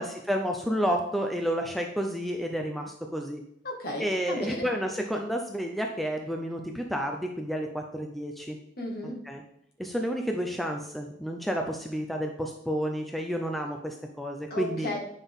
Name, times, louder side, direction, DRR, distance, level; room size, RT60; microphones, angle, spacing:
voice 1, 0.0-3.4 4.0-8.6 9.3-9.4 9.8-14.9, equal, ahead, 2 dB, 0.5 m, -30 dB
voice 2, 3.6-4.7 8.8-9.1 14.5-15.0, left 1 dB, 50° left, 0 dB, 1.9 m, -34 dB
9.1 x 5.6 x 3.6 m, 0.73 s
head